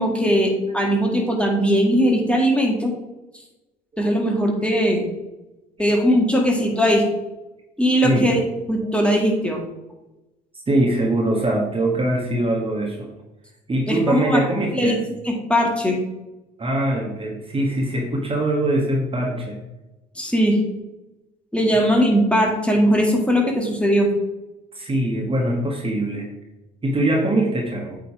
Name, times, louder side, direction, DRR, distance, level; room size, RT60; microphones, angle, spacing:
voice 1, 0.0-2.9 4.0-5.0 5.8-7.1 7.8-8.4 8.7-9.6 13.9-14.4 14.7-16.0 20.2-20.6 21.5-24.1, equal, 5° left, 0 dB, 1.9 m, -19 dB
voice 2, 4.0-4.8 5.8-5.9 6.7-6.9 8.0-8.4 10.7-13.1 13.7-14.9 16.6-19.6 24.7-26.3 26.8-28.0, right 1 dB, 25° right, 1 dB, 1.5 m, -23 dB
8.3 x 3.9 x 4.8 m, 0.99 s
hypercardioid pair, 60°, 21 cm